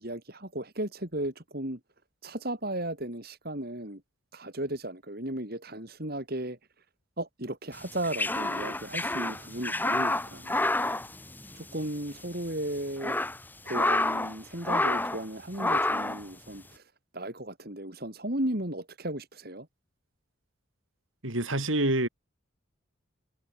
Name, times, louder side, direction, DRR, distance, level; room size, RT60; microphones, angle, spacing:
voice 1, 0.0-1.8 2.2-4.0 4.3-6.6 7.2-10.7 11.5-13.2 13.6-19.7, right 1 dB, 50° right, 4.7 m, -35 dB
sound 1, 7.8-11.9 12.1-12.3 12.8-14.4 14.6-15.2 15.6-16.2, left 2 dB, 10° left, 2.3 m, -29 dB
voice 2, 21.2-22.1, right 1 dB, 75° right, 6.7 m, -26 dB
head